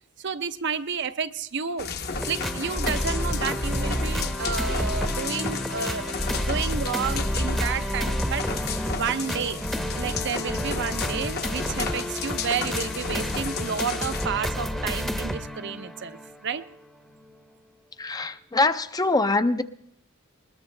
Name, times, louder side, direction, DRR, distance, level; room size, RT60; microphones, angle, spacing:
voice 1, 0.2-1.9 2.3-6.1 6.4-9.6 9.9-16.6, right 6 dB, 55° right, 0.6 m, -31 dB
sound 1, 1.8-14.3, left 5 dB, 45° left, 1.0 m, -33 dB
sound 2, 2.1-16.7 17.2-17.3, equal, ahead, 0.8 m, -30 dB
voice 2, 18.0-19.6, left 2 dB, 15° left, 0.5 m, -23 dB
21.0 x 21.0 x 3.3 m
head